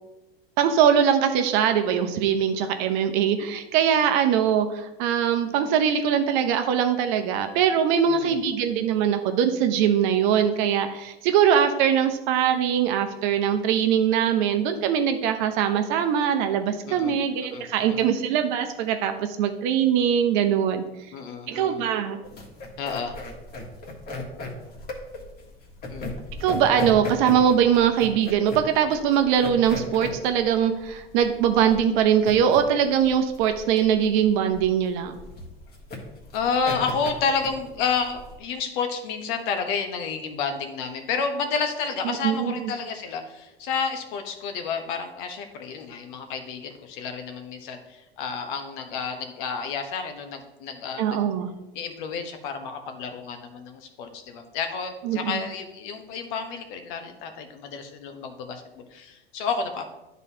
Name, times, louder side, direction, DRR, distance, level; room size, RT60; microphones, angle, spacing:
voice 1, 0.6-20.8 21.5-22.2 26.4-35.2 42.0-42.7 51.0-51.5 55.0-55.4, right 8 dB, 50° right, 7 dB, 0.8 m, -22 dB
voice 2, 8.1-8.4 16.8-17.2 17.5-18.0 21.1-21.8 22.8-23.2 25.9-26.2 36.3-51.2 51.7-59.9, left 5 dB, 55° left, 6 dB, 1.1 m, -30 dB
sound 1, 22.2-38.4, left 2 dB, 30° left, 1.6 m, -37 dB
12.0 x 4.0 x 2.8 m, 0.98 s
figure-of-eight pair, 80°, 30 cm